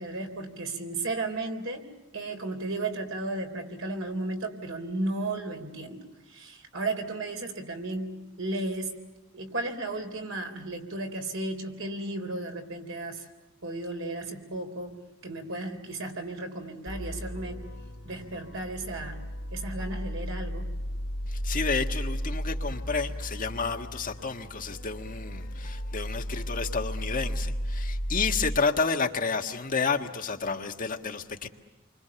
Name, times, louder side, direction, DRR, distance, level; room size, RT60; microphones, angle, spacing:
voice 1, 0.0-1.9 2.1-9.0 9.3-13.2 13.6-17.6 18.0-19.2 19.5-20.7, right 2 dB, 70° right, 5 dB, 3.8 m, -34 dB
sound 1, 16.9-28.6, equal, 70° left, 2.6 m, -34 dB
voice 2, 21.3-31.5, left 4 dB, 45° left, 4 dB, 1.6 m, -30 dB
29.0 x 25.0 x 7.0 m, 1.1 s
head